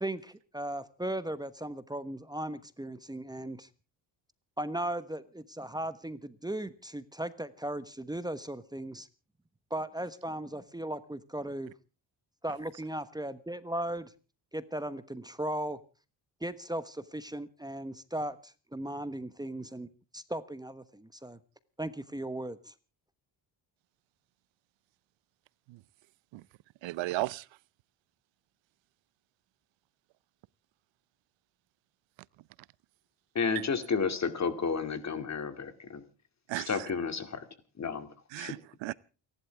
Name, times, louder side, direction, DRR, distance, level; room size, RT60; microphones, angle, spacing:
voice 1, 0.0-3.7 4.6-9.1 9.7-11.7 12.4-14.1 14.5-15.8 16.4-19.9 20.1-21.4 21.8-22.7, right 1 dB, 10° right, 1.1 m, -37 dB
voice 2, 26.8-27.5 36.5-36.7 38.3-38.9, right 19 dB, 80° right, 0.7 m, -34 dB
voice 3, 33.3-36.0 36.6-37.5 37.8-38.1 38.4-38.5, left 5 dB, 35° left, 2.5 m, -31 dB
29.0 x 11.5 x 3.5 m
cardioid pair, 95°, 44 cm